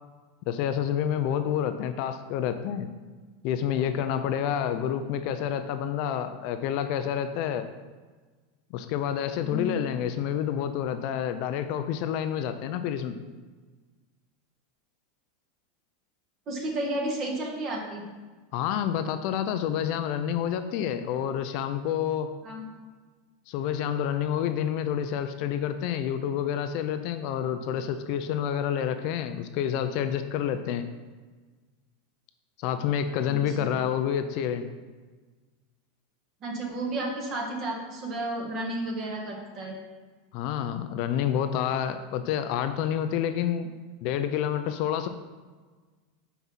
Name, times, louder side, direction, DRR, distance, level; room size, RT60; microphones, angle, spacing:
voice 1, 0.5-2.9 3.4-7.7 8.7-13.2 18.5-22.3 23.5-30.9 32.6-34.7 40.3-43.7 44.0-45.1, left 9 dB, 50° left, 9 dB, 0.4 m, -28 dB
voice 2, 9.4-9.7 16.5-18.0 22.4-22.6 33.3-33.8 36.4-39.7, right 1 dB, 35° right, 0 dB, 1.6 m, -32 dB
5.5 x 4.6 x 5.6 m, 1.4 s
supercardioid pair, 150°, 0 cm